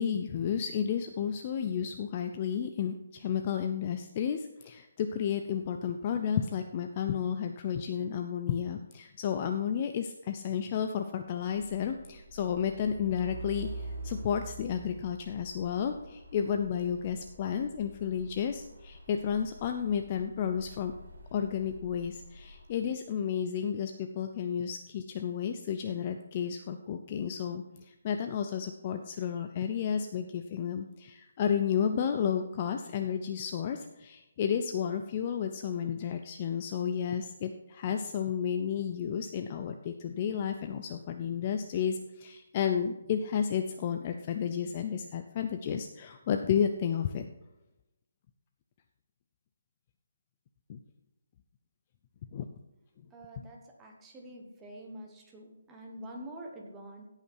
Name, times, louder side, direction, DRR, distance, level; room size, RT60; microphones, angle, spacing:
voice 1, 0.0-20.9 21.3-47.3 50.7-50.8 52.3-52.5, left 8 dB, 20° left, 6 dB, 0.4 m, -32 dB
Truck, 11.5-22.8, right 2 dB, 55° right, 2.6 m, -46 dB
voice 2, 53.1-57.1, right 1 dB, 5° right, 0 dB, 1.1 m, -46 dB
16.5 x 5.7 x 4.5 m, 0.96 s
hypercardioid pair, 180°, 0 cm